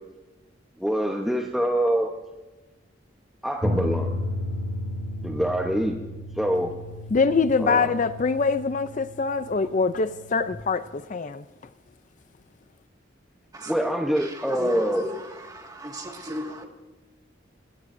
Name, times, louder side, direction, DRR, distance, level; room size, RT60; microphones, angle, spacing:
voice 1, 0.8-2.1 3.4-4.1 5.2-6.0 6.4-6.7 7.6-7.9 13.7-15.0, equal, ahead, 0.9 m, -25 dB
sound 1, 3.6-10.5, left 1 dB, 40° right, 2.1 m, -33 dB
voice 2, 7.1-11.4, left 4 dB, 40° left, 0.4 m, -24 dB
voice 3, 14.5-15.1 15.5-16.6, equal, 20° right, 1.9 m, -34 dB
26.5 x 20.5 x 2.6 m
head